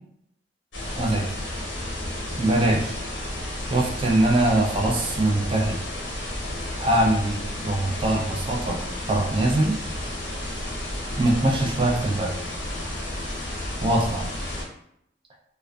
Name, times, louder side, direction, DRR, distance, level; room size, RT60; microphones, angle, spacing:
sound 1, 0.7-14.6, left 1 dB, 75° left, 0.7 m, -32 dB
voice 1, 1.0-1.3 2.4-3.0 3.7-5.8 6.8-8.8 9.1-9.8 11.2-12.3 13.8-14.3, right 1 dB, 30° right, 0 dB, 0.4 m, -22 dB
2.5 x 2.2 x 2.2 m, 0.74 s
head